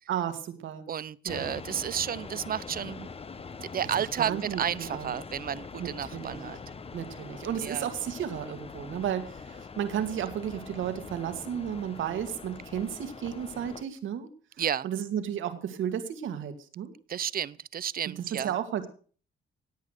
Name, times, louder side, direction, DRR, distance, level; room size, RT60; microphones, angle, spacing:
voice 1, 0.1-0.9 1.3-1.6 4.2-5.1 5.8-6.4 6.9-14.3 14.8-16.9 18.4-18.9, right 9 dB, 75° right, 2.3 m, -33 dB
voice 2, 0.9-3.1 3.6-6.6 7.6-7.9 14.6-14.9 17.1-18.6, right 9 dB, 45° right, 0.7 m, -32 dB
sound 1, 1.3-13.8, left 5 dB, 30° left, 1.1 m, -43 dB
17.5 x 8.6 x 6.6 m
cardioid pair, 90°, 20 cm